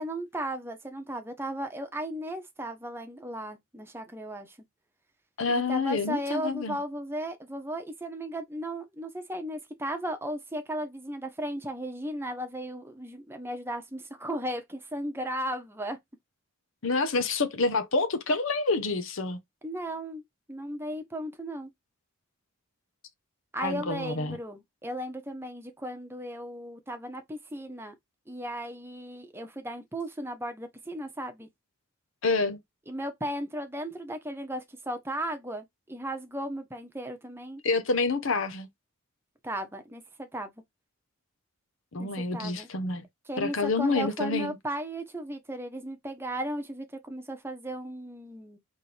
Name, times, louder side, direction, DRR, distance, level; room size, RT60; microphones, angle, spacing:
voice 1, 0.0-4.5 5.5-16.0 19.6-20.2 20.5-21.7 23.5-27.9 28.3-31.5 32.9-37.6 39.4-40.5 42.0-42.7 43.3-48.6, right 1 dB, 10° right, 0.9 m, -36 dB
voice 2, 5.4-6.8 16.8-19.4 23.6-24.4 32.2-32.6 37.6-38.7 41.9-43.0 43.4-44.6, left 3 dB, 65° left, 0.9 m, -28 dB
4.3 x 3.3 x 3.3 m
head